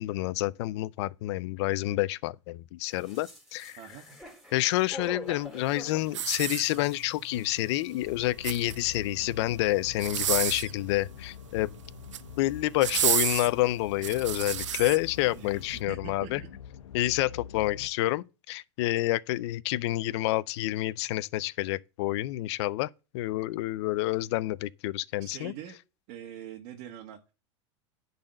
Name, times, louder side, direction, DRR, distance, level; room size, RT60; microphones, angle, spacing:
voice 1, 0.0-3.8 4.5-11.8 12.4-16.4 16.9-25.5, left 17 dB, 65° left, 0.6 m, -28 dB
sound 1, 2.9-7.7 8.0-8.1, equal, ahead, 3.9 m, -45 dB
sound 2, 6.1-7.1 8.2-9.0 9.9-10.8 11.9-12.3 12.8-15.0 15.6-15.7, right 10 dB, 90° right, 0.7 m, -30 dB
sound 3, 8.0-17.9, left 8 dB, 80° left, 1.1 m, -45 dB
voice 2, 15.3-16.5 25.2-25.8 26.1-27.3, right 10 dB, 55° right, 1.5 m, -44 dB
10.5 x 4.1 x 7.7 m
hypercardioid pair, 105°, 15 cm